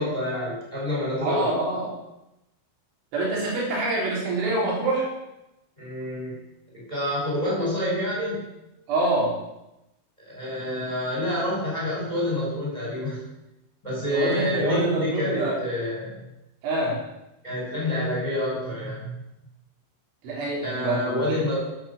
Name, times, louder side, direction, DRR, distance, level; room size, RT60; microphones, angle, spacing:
voice 1, 0.0-1.5 5.8-6.4 6.7-8.4 10.2-13.2 13.8-16.2 17.4-19.2 20.6-21.6, left 1 dB, 10° left, -6 dB, 5.0 m, -28 dB
voice 2, 1.2-1.9 3.1-5.1 8.9-9.3 14.1-15.6 16.6-17.0 20.2-21.2, right 2 dB, 75° right, -4 dB, 6.1 m, -25 dB
11.0 x 9.2 x 7.2 m, 0.93 s
omnidirectional pair, 5.5 m